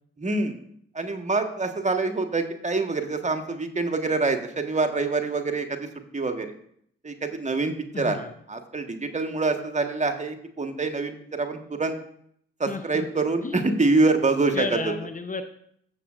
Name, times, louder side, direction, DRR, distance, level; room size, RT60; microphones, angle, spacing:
voice 1, 0.2-0.6 0.9-5.9 6.1-6.5 7.0-8.2 8.5-11.9 12.6-14.7, right 3 dB, 25° right, 6 dB, 1.5 m, -25 dB
voice 2, 7.9-8.3 12.7-13.1 13.4-13.6 14.5-15.4, left 4 dB, 25° left, 9 dB, 0.9 m, -32 dB
14.5 x 7.2 x 2.6 m, 0.68 s
hypercardioid pair, 45°, 31 cm